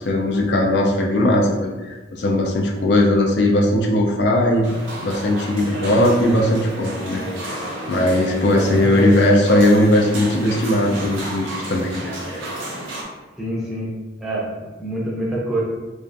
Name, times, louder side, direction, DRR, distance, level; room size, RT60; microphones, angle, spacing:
voice 1, 0.1-4.7 5.0-7.2 7.9-12.4, left 1 dB, 60° left, 0 dB, 0.4 m, -18 dB
sound 1, 4.6-13.0, right 1 dB, 80° right, 0.6 m, -31 dB
voice 2, 8.6-9.1 13.4-15.6, right 1 dB, ahead, -6 dB, 0.5 m, -26 dB
2.3 x 2.3 x 2.5 m, 1.2 s
head